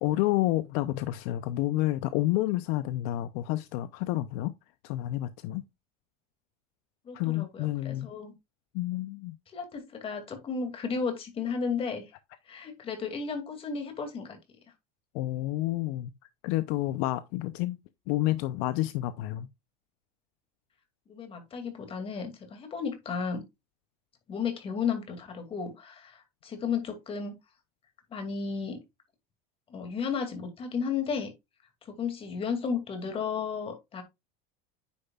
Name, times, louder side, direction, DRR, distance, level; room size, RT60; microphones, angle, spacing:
voice 1, 0.0-4.5 4.8-5.6 7.1-8.1 8.7-9.4 15.1-16.1 16.4-17.8 18.1-19.5, left 16 dB, 65° left, 0.6 m, -29 dB
voice 2, 7.1-8.3 9.5-12.0 12.5-14.4 21.1-23.4 24.3-27.3 28.1-28.8 29.7-31.3 31.9-34.0, left 6 dB, 25° left, 2.4 m, -33 dB
9.6 x 6.7 x 2.4 m
supercardioid pair, 145°, 21 cm